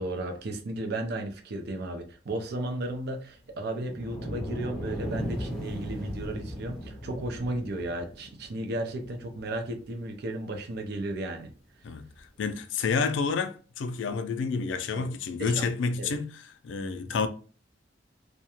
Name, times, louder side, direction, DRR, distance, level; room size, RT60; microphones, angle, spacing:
voice 1, 0.0-11.5 14.9-15.1 15.4-15.7 16.0-16.2, right 1 dB, 55° right, 0.4 m, -34 dB
sound 1, 3.6-10.0 10.7-10.8 12.2-12.3, equal, ahead, 0.5 m, -37 dB
voice 2, 11.8-17.3, left 5 dB, 80° left, 0.4 m, -30 dB
2.3 x 2.1 x 2.8 m
head